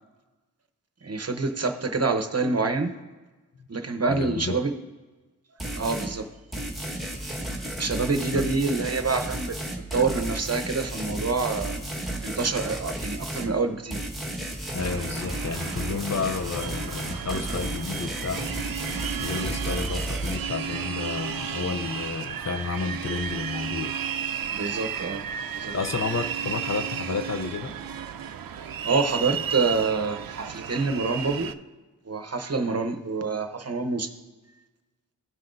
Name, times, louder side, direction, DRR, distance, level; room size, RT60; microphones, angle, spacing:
voice 1, 1.0-2.9 3.7-4.7 5.8-6.3 7.7-9.6 9.9-11.8 12.2-14.0 24.5-25.2 25.5-25.7 28.8-31.5 32.1-34.1, right 4 dB, 45° right, 0.8 m, -26 dB
voice 2, 4.1-4.6 8.1-8.5 14.7-18.5 19.2-24.0 25.7-27.8, left 5 dB, 45° left, 0.5 m, -31 dB
sound 1, 5.6-6.1 6.5-13.5 13.9-20.4, right 1 dB, ahead, 1.3 m, -33 dB
sound 2, 14.8-31.5, right 8 dB, 70° right, 0.5 m, -33 dB
17.0 x 5.8 x 2.5 m
wide cardioid pair, 80°, 36 cm